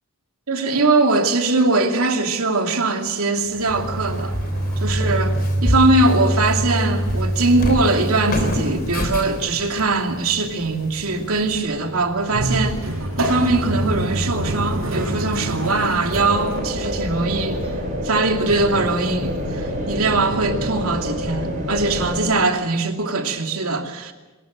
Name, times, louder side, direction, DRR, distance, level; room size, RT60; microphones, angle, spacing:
voice 1, 0.5-4.4 4.8-12.8 13.2-17.7 18.0-24.1, right 3 dB, 90° right, 2.7 m, -21 dB
Walk footsteps, 3.4-11.6, left 1 dB, 45° left, 3.8 m, -30 dB
sound 1, 3.7-16.6, right 1 dB, 70° right, 5.9 m, -25 dB
sound 2, 16.1-22.3, equal, 40° right, 7.8 m, -27 dB
23.0 x 20.5 x 7.5 m
head